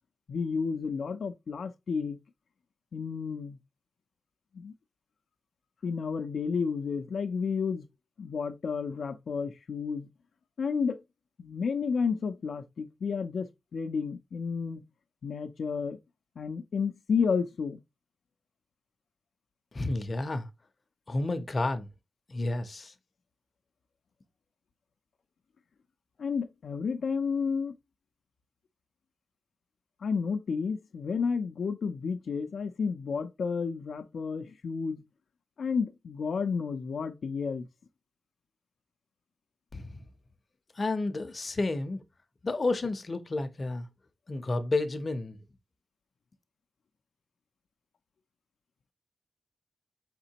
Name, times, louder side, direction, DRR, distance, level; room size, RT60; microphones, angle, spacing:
voice 1, 0.3-2.2 2.9-3.6 4.5-4.7 5.8-7.9 8.2-10.1 10.6-11.0 11.4-14.8 15.2-16.0 16.4-17.8 26.2-27.8 30.0-35.0 35.6-37.7, left 5 dB, 85° left, 0.4 m, -31 dB
voice 2, 19.7-20.5 21.1-21.9 22.3-22.9 39.7-40.1 40.7-42.0 42.4-43.9 44.3-45.4, left 2 dB, 35° left, 0.5 m, -31 dB
4.9 x 3.6 x 2.8 m
wide cardioid pair, 160°, 0 cm